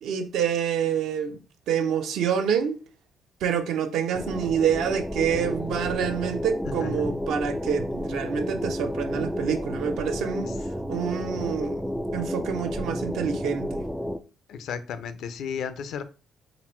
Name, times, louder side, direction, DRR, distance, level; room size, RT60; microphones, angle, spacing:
voice 1, 0.0-1.4 1.7-2.8 3.4-10.5 10.9-11.8 12.1-13.8, right 8 dB, 80° right, 0.7 m, -27 dB
sound 1, 4.1-14.2, equal, ahead, 0.4 m, -31 dB
voice 2, 6.8-7.1 14.5-16.0, left 7 dB, 75° left, 0.5 m, -33 dB
3.9 x 2.1 x 4.3 m
cardioid pair, 80°, 0 cm